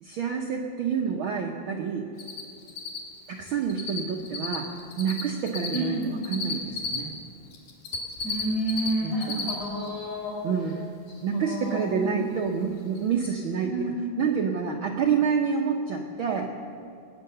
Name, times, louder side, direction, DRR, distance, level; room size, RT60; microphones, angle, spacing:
voice 1, 0.0-2.1 3.3-7.1 9.0-9.5 10.4-10.8 11.2-16.6, right 6 dB, 85° right, 2 dB, 1.1 m, -28 dB
Cricket, 2.2-2.4 2.7-4.0 4.3-7.0 7.5-8.9 9.1-9.5 9.9-10.0 12.5-12.6 13.0-13.1 13.2-13.3, left 5 dB, 85° left, 3.3 m, -32 dB
voice 2, 5.7-6.2 8.2-10.4 11.3-12.3 13.6-14.1, right 1 dB, 60° left, -4 dB, 5.5 m, -30 dB
19.5 x 9.2 x 6.8 m, 2.8 s
omnidirectional pair, 3.4 m